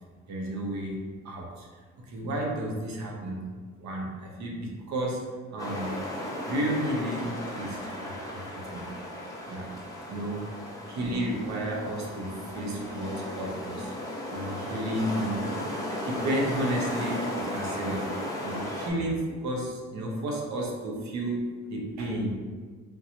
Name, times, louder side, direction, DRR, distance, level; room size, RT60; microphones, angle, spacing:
voice 1, 0.3-1.0 1.2-1.7 2.0-3.5 3.8-6.0 6.5-8.9 9.5-9.7 10.1-10.4 10.9-13.9 14.3-15.5 16.0-18.0 18.4-22.4, right 1 dB, 65° right, -1 dB, 0.9 m, -32 dB
sound 1, 5.6-18.9, equal, 10° left, 0.7 m, -35 dB
3.7 x 2.7 x 2.9 m, 1.5 s
cardioid pair, 90°, 30 cm